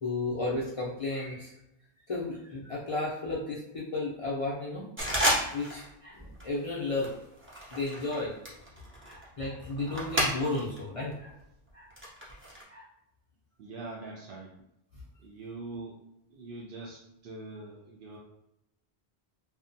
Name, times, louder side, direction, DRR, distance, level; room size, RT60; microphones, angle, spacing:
voice 1, 0.0-1.5 2.1-4.8 5.5-7.1 7.7-8.3 9.0-11.3 11.7-11.9 12.7-12.9, left 2 dB, 50° left, -6 dB, 0.4 m, -33 dB
sound 1, 5.0-5.9 6.2-6.5 7.0-10.8 11.1-12.6, equal, 20° right, 0.4 m, -32 dB
voice 2, 13.6-14.5 15.2-16.0 16.3-18.2, right 3 dB, 65° right, -4 dB, 0.7 m, -43 dB
2.6 x 2.1 x 2.6 m, 0.83 s
omnidirectional pair, 1.0 m